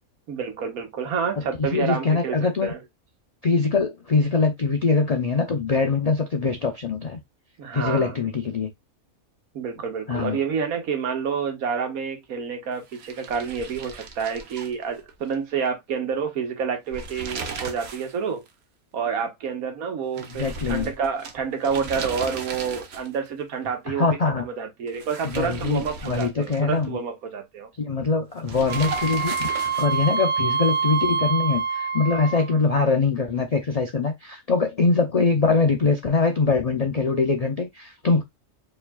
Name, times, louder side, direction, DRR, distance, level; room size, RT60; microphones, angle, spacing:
voice 1, 0.3-2.8 7.6-8.3 9.5-18.4 18.9-27.7, right 6 dB, 80° right, 1.5 m, -29 dB
voice 2, 1.6-2.7 3.4-7.2 7.7-8.7 10.1-10.4 20.2-20.9 23.9-24.4 25.2-27.0 27.8-38.2, left 4 dB, 70° left, 0.3 m, -23 dB
sound 1, 12.9-15.4 15.7-15.8 16.8-18.2 18.5-18.6 20.2-23.3 24.9-26.9 28.4-30.1, right 4 dB, 55° right, 1.0 m, -36 dB
Wind instrument woodwind instrument, 28.7-32.6, right 6 dB, 25° left, 1.3 m, -26 dB
4.6 x 3.2 x 2.2 m
omnidirectional pair, 1.5 m